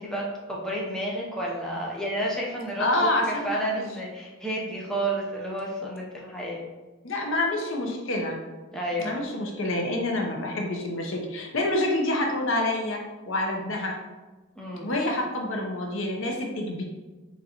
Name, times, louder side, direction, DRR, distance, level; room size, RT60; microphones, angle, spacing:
voice 1, 0.0-2.9 3.3-6.7 8.7-9.3 14.6-14.9, right 1 dB, 5° left, -4 dB, 0.6 m, -31 dB
voice 2, 2.8-3.8 7.0-8.4 9.0-14.0 14.8-16.8, left 1 dB, 70° left, 1 dB, 0.7 m, -27 dB
4.0 x 3.6 x 2.8 m, 1.2 s
head